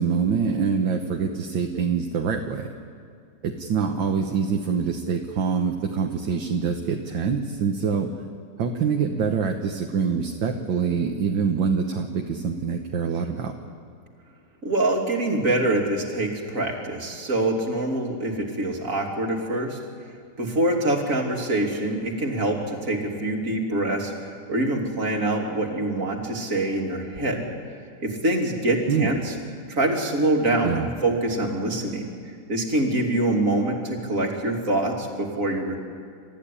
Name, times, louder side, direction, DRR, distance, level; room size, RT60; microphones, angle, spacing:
voice 1, 0.0-2.7 3.4-8.1 8.6-13.5 28.9-29.2 30.6-30.9, right 6 dB, 65° right, 3 dB, 1.9 m, -25 dB
voice 2, 14.6-19.8 20.4-24.1 24.5-27.5 28.0-29.3 29.7-32.1 32.5-35.7, right 1 dB, 40° right, 1 dB, 3.1 m, -25 dB
28.5 x 14.5 x 10.0 m, 2.2 s
omnidirectional pair, 2.2 m